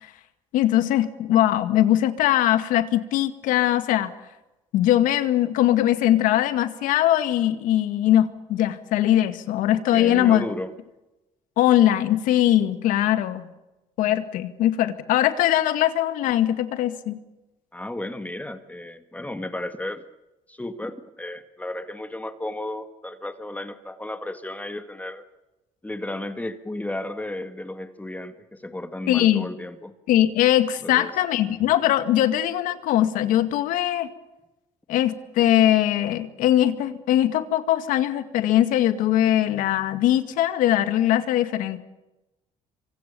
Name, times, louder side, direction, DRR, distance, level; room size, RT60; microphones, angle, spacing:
voice 1, 0.5-4.1 4.7-10.4 11.6-13.4 14.0-17.2 29.1-29.5 30.1-34.1 34.9-41.8, left 12 dB, 80° left, 10 dB, 2.1 m, -21 dB
voice 2, 9.9-10.7 17.7-20.0 20.5-25.2 25.8-29.9 30.8-31.1, left 1 dB, 10° left, 9 dB, 1.9 m, -33 dB
27.5 x 24.5 x 7.0 m, 1.0 s
cardioid pair, 80°, 13 cm